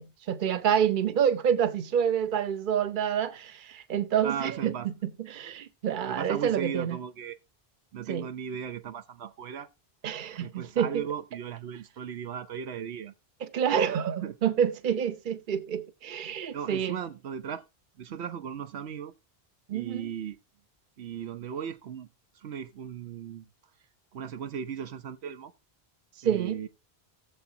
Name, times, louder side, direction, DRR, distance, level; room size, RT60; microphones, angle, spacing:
voice 1, 0.0-7.0 8.1-8.3 10.0-11.0 13.4-17.0 19.7-20.1 26.2-26.6, right 8 dB, 55° right, 0.9 m, -28 dB
voice 2, 4.2-4.9 6.1-7.4 7.9-9.7 10.4-13.1 14.2-14.3 16.5-17.6 18.0-19.1 19.7-20.4 21.0-22.1 22.4-23.4 24.1-25.5 26.2-26.7, right 8 dB, 80° right, 1.0 m, -37 dB
17.5 x 7.2 x 2.8 m
omnidirectional pair, 1.1 m